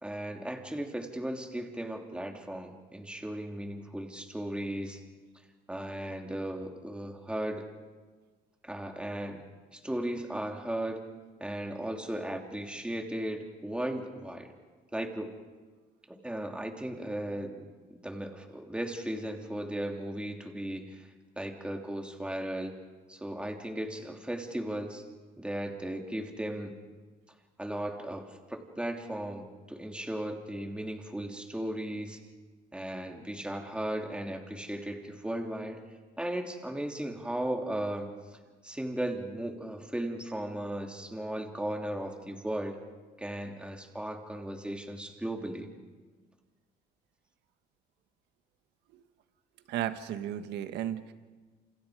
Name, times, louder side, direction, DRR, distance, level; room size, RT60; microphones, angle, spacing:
voice 1, 0.0-5.0 5.7-7.7 8.6-9.5 9.7-11.1 11.4-14.5 14.9-15.3 16.1-21.1 21.4-22.7 23.1-25.0 25.4-26.7 27.6-32.2 32.7-35.8 36.2-38.1 38.6-42.8 43.2-45.7, right 1 dB, 5° right, 3 dB, 3.1 m, -36 dB
voice 2, 49.7-51.1, right 11 dB, 80° right, 10 dB, 1.6 m, -34 dB
28.0 x 27.5 x 5.1 m, 1.4 s
cardioid pair, 100°, 18 cm